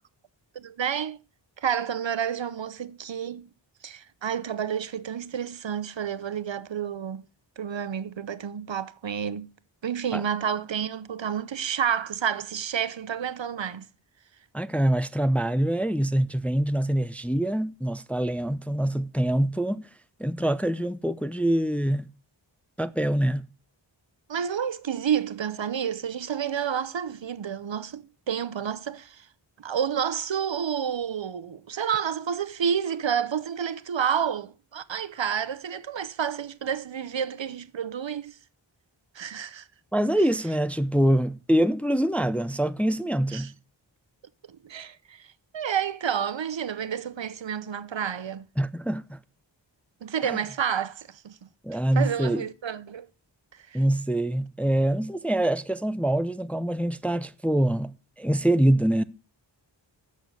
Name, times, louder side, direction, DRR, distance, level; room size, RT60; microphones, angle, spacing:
voice 1, 0.5-1.2 1.6-3.5 3.8-7.2 7.6-9.5 9.8-13.9 24.3-29.3 29.6-38.4 39.1-39.7 43.3-43.5 44.5-48.4 50.0-51.4 51.9-53.1 53.7-53.8, right 8 dB, 70° right, 0.8 m, -30 dB
voice 2, 14.5-19.8 20.2-22.1 22.8-23.4 39.9-43.5 48.6-49.2 50.3-50.4 51.6-52.4 53.7-59.0, right 1 dB, 5° left, 0.5 m, -25 dB
8.2 x 6.5 x 6.7 m
wide cardioid pair, 50°, 46 cm